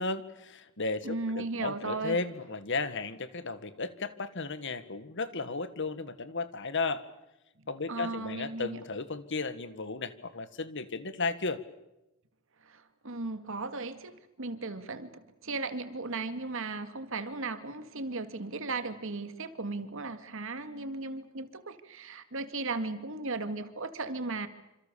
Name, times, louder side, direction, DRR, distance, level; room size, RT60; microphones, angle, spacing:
voice 1, 0.0-7.0 7.7-11.6, left 3 dB, 60° left, 12 dB, 1.8 m, -34 dB
voice 2, 1.0-2.2 7.9-8.8 12.6-24.5, right 3 dB, 65° right, 10 dB, 2.2 m, -36 dB
27.0 x 27.0 x 7.0 m, 0.92 s
head